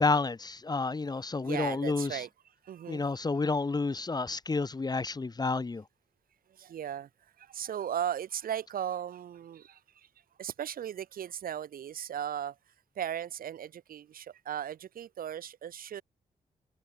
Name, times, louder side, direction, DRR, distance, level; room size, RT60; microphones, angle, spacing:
voice 1, 0.0-2.2 2.9-5.8, left 3 dB, 30° left, 1.1 m, -30 dB
voice 2, 1.4-2.3 2.6-3.1 6.5-7.1 7.4-10.1 10.4-12.6 12.9-16.0, right 9 dB, 85° right, 3.2 m, -37 dB
cardioid pair, 75°, 14 cm